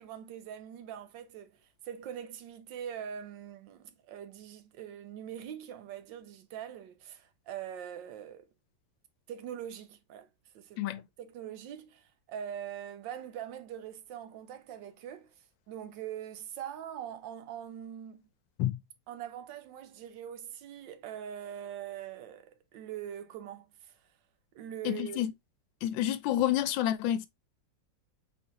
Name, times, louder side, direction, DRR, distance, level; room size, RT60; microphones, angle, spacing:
voice 1, 0.0-8.5 9.3-10.3 10.5-15.3 15.7-18.2 19.1-24.0 24.5-25.2, right 9 dB, 75° right, 1.3 m, -43 dB
voice 2, 24.8-25.3 25.8-27.3, left 12 dB, 85° left, 1.3 m, -29 dB
4.2 x 3.9 x 2.8 m
omnidirectional pair, 2.0 m